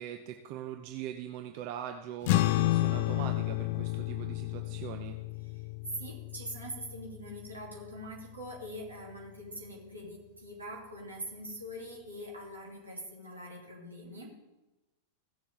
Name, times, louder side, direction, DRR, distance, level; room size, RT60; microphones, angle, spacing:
voice 1, 0.0-5.2, right 10 dB, 45° right, 6 dB, 0.7 m, -41 dB
sound 1, 2.2-8.9, left 17 dB, 50° left, 0.4 m, -32 dB
voice 2, 6.0-14.4, equal, 75° right, -3 dB, 2.9 m, -43 dB
16.0 x 7.1 x 3.5 m, 1.0 s
figure-of-eight pair, 90°, 0 cm